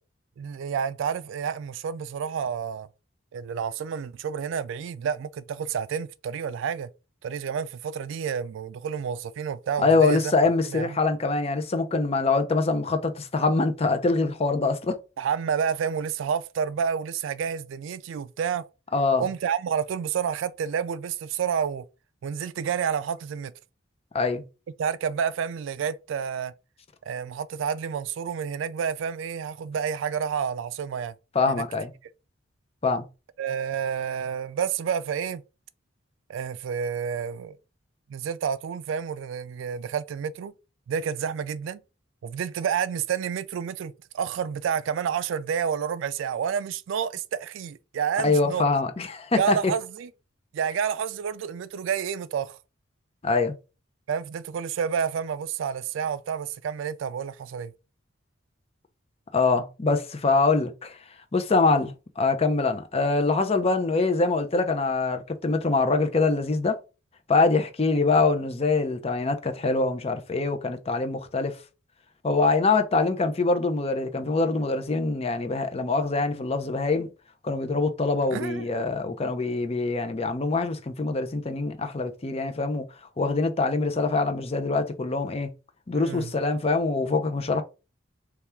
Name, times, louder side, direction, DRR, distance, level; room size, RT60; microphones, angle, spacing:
voice 1, 0.4-2.9 3.3-6.9 7.2-10.3 10.7-11.0 15.2-18.7 19.2-21.9 22.2-23.5 24.8-26.5 27.1-31.1 31.5-31.6 33.4-35.4 36.3-37.6 38.1-40.5 40.9-41.8 42.2-48.7 49.3-50.1 50.5-52.6 54.1-57.7 78.3-78.9 85.9-86.3, right 7 dB, 75° right, 0.3 m, -29 dB
voice 2, 9.8-15.0 18.9-19.2 24.1-24.4 31.3-31.9 32.8-33.0 48.2-49.6 53.2-53.6 59.3-61.0 61.3-66.8 67.3-71.6 72.2-77.1 77.4-82.8 83.2-85.5 85.9-87.6, left 3 dB, 30° left, 0.5 m, -24 dB
3.4 x 2.3 x 4.3 m
head